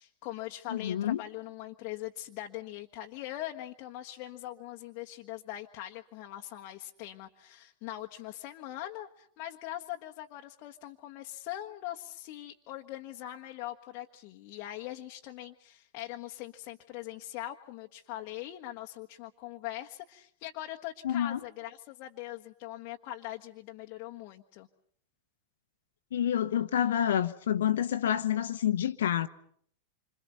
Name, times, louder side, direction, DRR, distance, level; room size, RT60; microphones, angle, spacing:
voice 1, 0.0-24.7, left 14 dB, 45° left, 1.4 m, -42 dB
voice 2, 0.7-1.2 21.0-21.4 26.1-29.3, left 10 dB, 60° left, 1.2 m, -28 dB
28.0 x 26.5 x 5.7 m
figure-of-eight pair, 90°, 0 cm